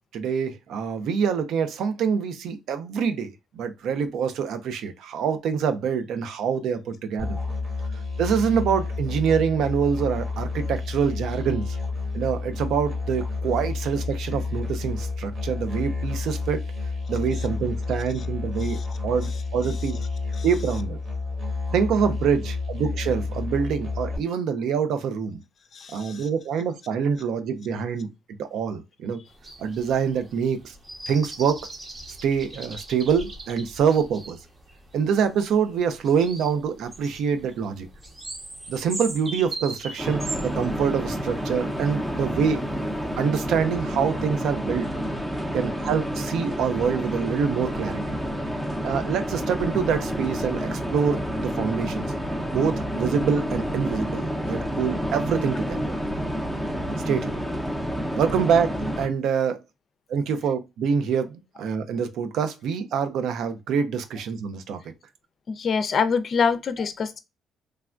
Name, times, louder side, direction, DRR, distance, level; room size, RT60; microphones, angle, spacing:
voice 1, 0.1-7.4 8.2-11.8 12.1-16.6 17.1-20.0 20.4-21.0 21.7-25.4 25.9-28.1 28.4-29.2 29.6-30.7 31.1-31.7 32.2-34.4 34.9-37.9 38.7-42.7 43.2-44.9 45.5-48.0 48.8-52.1 52.5-55.9 57.1-57.4 58.1-59.6 60.1-64.8, right 6 dB, 80° right, 0.5 m, -25 dB
Musical instrument, 7.2-24.2, left 3 dB, 55° right, 1.7 m, -30 dB
voice 2, 25.7-26.2 65.5-67.2, left 5 dB, 55° left, 0.4 m, -25 dB
sound 1, 29.3-43.2, right 2 dB, 35° right, 1.0 m, -40 dB
sound 2, 40.0-59.1, equal, 10° right, 0.7 m, -29 dB
3.3 x 2.2 x 2.4 m
cardioid pair, 90°, 0 cm